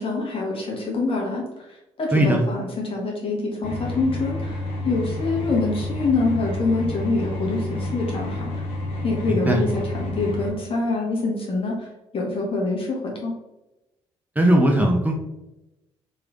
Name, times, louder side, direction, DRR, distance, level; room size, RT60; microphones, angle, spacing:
voice 1, 0.0-1.7 2.0-8.5 9.0-11.9 12.1-13.3, left 3 dB, 40° left, -1 dB, 1.3 m, -25 dB
sound 1, 3.6-10.5, left 2 dB, 65° left, 0.8 m, -29 dB
voice 2, 9.3-9.6 14.4-15.1, right 1 dB, 10° right, 0 dB, 0.6 m, -18 dB
3.2 x 3.1 x 2.5 m, 0.96 s
hypercardioid pair, 45°, 14 cm